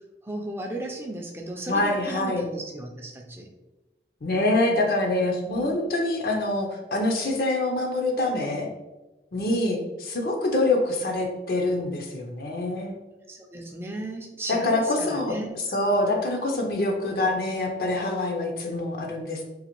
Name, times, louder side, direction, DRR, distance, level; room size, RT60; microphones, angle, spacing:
voice 1, 0.2-3.5 5.5-5.9 13.3-15.6, right 1 dB, 15° right, 1 dB, 0.4 m, -35 dB
voice 2, 1.7-2.4 4.2-8.7 9.3-12.9 14.5-15.3 15.7-19.4, left 2 dB, 55° left, 2 dB, 0.5 m, -25 dB
3.9 x 2.4 x 2.9 m, 1.1 s
head